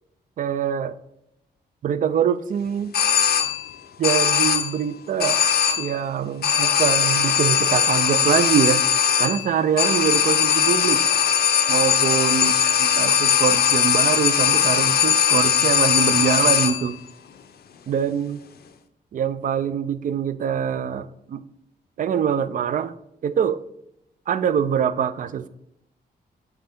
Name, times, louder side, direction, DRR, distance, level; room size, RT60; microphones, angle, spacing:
voice 1, 0.4-0.9 1.8-2.9 4.0-5.4 5.8-8.8 9.2-11.0 11.7-12.5 12.8-17.0 17.9-18.4 19.1-21.4 22.0-22.9 23.2-23.6 24.3-25.5, right 8 dB, 50° right, 14 dB, 0.4 m, -24 dB
sound 1, 2.9-3.8 4.0-4.8 5.2-6.0 6.4-17.0, left 8 dB, 65° left, 0.6 m, -20 dB
8.0 x 3.4 x 3.6 m, 0.81 s
cardioid pair, 105°, 17 cm